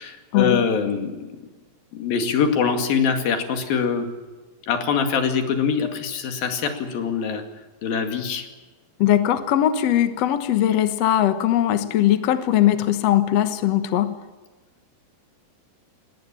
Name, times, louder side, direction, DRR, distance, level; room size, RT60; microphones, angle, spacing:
voice 1, 0.0-1.3 1.9-4.1 4.7-7.4 7.8-8.5, left 6 dB, 80° left, 6 dB, 4.0 m, -23 dB
voice 2, 9.0-14.1, left 12 dB, 60° left, 10 dB, 1.9 m, -20 dB
20.0 x 19.0 x 9.0 m, 1.2 s
omnidirectional pair, 4.1 m